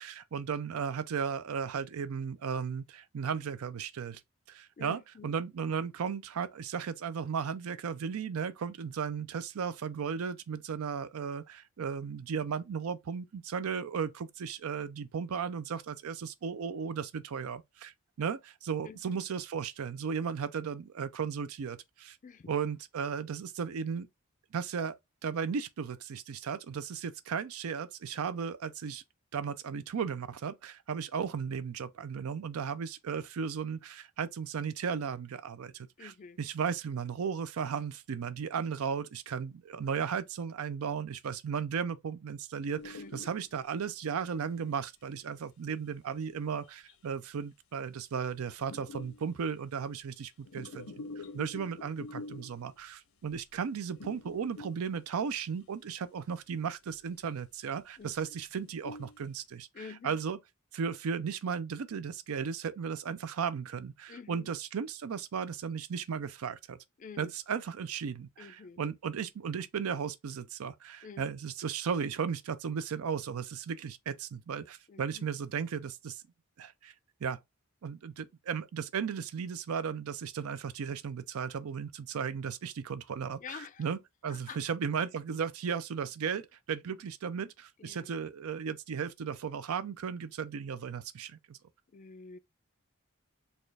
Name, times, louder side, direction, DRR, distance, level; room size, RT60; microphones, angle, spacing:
voice 1, 0.0-4.2 4.5-17.9 18.2-22.2 22.5-24.1 24.5-29.0 29.3-36.1 36.4-60.4 60.7-66.8 67.2-76.2 76.6-76.9 77.2-77.4 77.8-91.6, right 6 dB, 85° right, 0.4 m, -35 dB
voice 2, 4.8-5.3 18.8-19.2 22.2-22.5 36.0-36.4 42.9-43.4 58.0-58.4 59.7-60.2 64.1-64.5 67.0-67.3 68.4-68.8 71.0-71.3 74.9-75.3 83.4-83.9 84.3-84.6 87.8-88.1 91.9-92.4, left 5 dB, 35° left, 0.3 m, -48 dB
sound 1, 42.8-43.6 44.3-44.4 46.9-47.0 48.6-49.3 50.3-52.7 53.3-53.5 53.9-55.1 56.6-56.9 57.4-57.7 58.2-58.3 58.6-59.2, left 3 dB, 75° left, 0.6 m, -46 dB
4.2 x 2.4 x 3.2 m
head